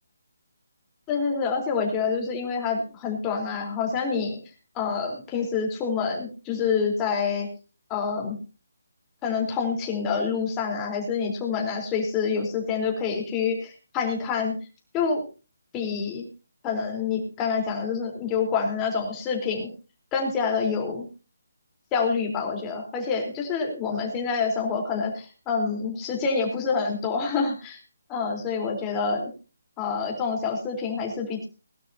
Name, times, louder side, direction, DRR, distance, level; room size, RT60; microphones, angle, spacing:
voice 1, 1.1-4.4 4.8-7.5 7.9-8.4 9.2-14.5 14.9-15.2 15.7-16.2 16.6-19.7 20.1-21.1 21.9-27.8 28.1-29.3 29.8-31.5, left 5 dB, 15° left, 1 dB, 3.9 m, -27 dB
21.0 x 12.5 x 2.8 m, 0.32 s
hypercardioid pair, 160°, 0 cm